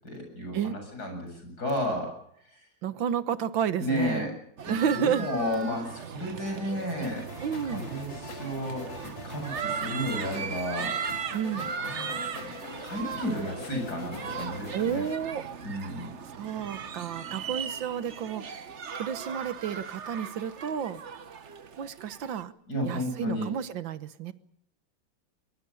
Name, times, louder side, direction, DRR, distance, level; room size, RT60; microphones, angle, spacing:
voice 1, 0.0-2.1 2.5-2.6 3.8-4.3 4.6-7.3 7.6-8.9 9.2-11.0 11.5-12.2 12.6-15.0 15.6-16.1 22.7-23.5, equal, 50° left, 3 dB, 8.4 m, -32 dB
voice 2, 2.8-4.3 4.7-5.3 7.4-7.9 11.3-11.7 14.7-15.5 16.3-21.0 21.8-22.5 22.8-24.3, right 8 dB, 75° right, 13 dB, 1.9 m, -31 dB
sound 1, 4.6-22.4, right 7 dB, 45° right, 1.2 m, -38 dB
sound 2, 7.0-15.2, left 5 dB, 70° left, 2.7 m, -43 dB
23.0 x 22.0 x 7.0 m, 0.70 s
omnidirectional pair, 2.1 m